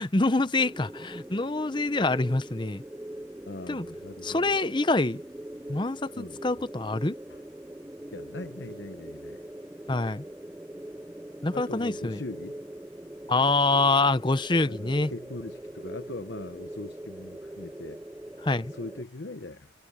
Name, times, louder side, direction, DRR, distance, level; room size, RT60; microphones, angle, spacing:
voice 1, 0.0-2.8 3.7-3.8 4.2-5.2 5.7-7.1 9.9-10.2 11.4-12.2 13.3-15.1 18.4-18.7, left 2 dB, 25° left, 0.7 m, -25 dB
sound 1, 0.6-19.0, right 1 dB, 10° right, 0.6 m, -42 dB
voice 2, 3.5-4.6 6.1-6.4 7.3-7.4 8.1-9.4 11.5-12.6 14.6-18.0 18.7-19.7, left 2 dB, 60° left, 0.9 m, -41 dB
head